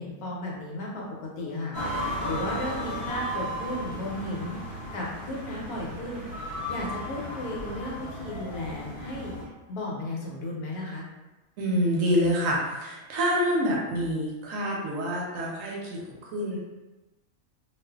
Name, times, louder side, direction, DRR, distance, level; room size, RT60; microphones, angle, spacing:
voice 1, 0.0-4.5 4.9-9.3 9.7-11.0, left 1 dB, 80° left, -3 dB, 1.1 m, -35 dB
sound 1, 1.7-9.4, equal, 55° left, 0.7 m, -35 dB
voice 2, 11.6-16.6, equal, 70° right, -3 dB, 0.9 m, -27 dB
2.5 x 2.4 x 2.3 m, 1.1 s
omnidirectional pair, 1.6 m